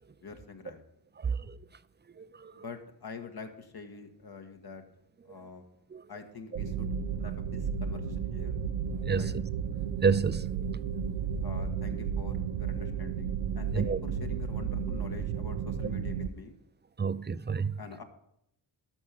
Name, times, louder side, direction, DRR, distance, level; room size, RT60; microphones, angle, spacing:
voice 1, 0.2-0.8 2.5-4.8 5.3-5.6 6.1-6.9 7.2-8.5 9.2-9.3 11.4-16.5 17.8-18.0, left 4 dB, 50° left, 1.7 m, -45 dB
voice 2, 1.2-1.6 2.2-2.5 5.9-6.0 9.0-9.3 10.0-10.5 13.7-14.0 17.0-17.7, right 5 dB, 20° right, 0.5 m, -29 dB
sound 1, 6.6-16.3, right 7 dB, 90° right, 0.6 m, -33 dB
12.5 x 5.6 x 6.0 m
cardioid pair, 45°, 48 cm